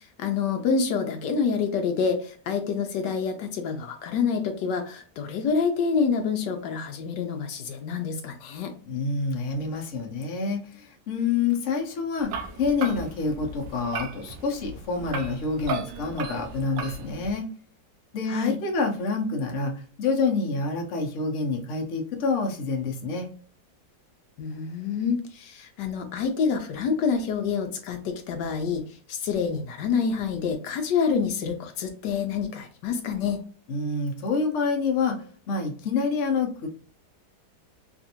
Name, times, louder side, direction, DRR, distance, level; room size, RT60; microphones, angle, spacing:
voice 1, 0.0-8.7 18.3-18.6 24.4-28.8 29.1-33.4, left 5 dB, 80° left, 5 dB, 1.2 m, -27 dB
voice 2, 8.8-12.3 12.6-17.5 18.1-23.3 33.7-35.2 35.5-36.7, left 4 dB, 55° left, 1 dB, 1.0 m, -27 dB
sound 1, 12.2-17.3, right 4 dB, 90° right, 1.3 m, -36 dB
3.4 x 2.5 x 2.8 m, 0.42 s
omnidirectional pair, 1.9 m